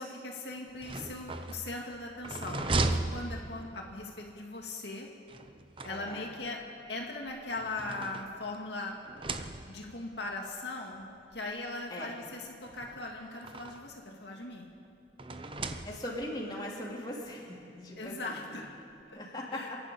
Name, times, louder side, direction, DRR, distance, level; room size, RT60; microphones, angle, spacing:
voice 1, 0.0-5.1 5.8-6.6 6.9-9.0 9.7-14.7 18.0-18.7 19.5-19.7, left 2 dB, 75° left, 0 dB, 2.2 m, -39 dB
sound 1, 0.7-4.0 5.3-6.5 7.3-8.7 9.0-10.0 10.9-11.0 11.3-11.4 12.6-14.0 15.2-16.4, right 2 dB, 30° right, 0.8 m, -37 dB
voice 2, 5.9-6.2 11.9-12.2 15.8-18.5 19.1-19.8, left 1 dB, 25° left, -3 dB, 3.3 m, -40 dB
27.0 x 11.5 x 8.7 m, 2.4 s
head